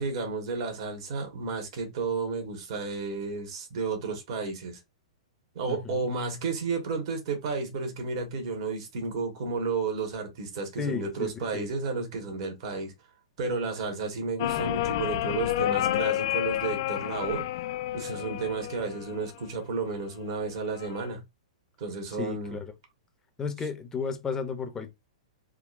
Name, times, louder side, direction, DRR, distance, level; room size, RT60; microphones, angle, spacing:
voice 1, 0.0-4.8 5.5-12.9 13.4-17.4 17.9-21.2 21.8-22.6, right 4 dB, 55° right, 1.3 m, -32 dB
voice 2, 5.7-6.0 10.8-11.7 22.2-22.7 23.4-24.9, left 5 dB, 15° left, 0.7 m, -33 dB
sound 1, 14.4-19.4 20.6-21.1, left 13 dB, 50° left, 0.3 m, -30 dB
3.6 x 2.2 x 2.5 m
hypercardioid pair, 120°, 3 cm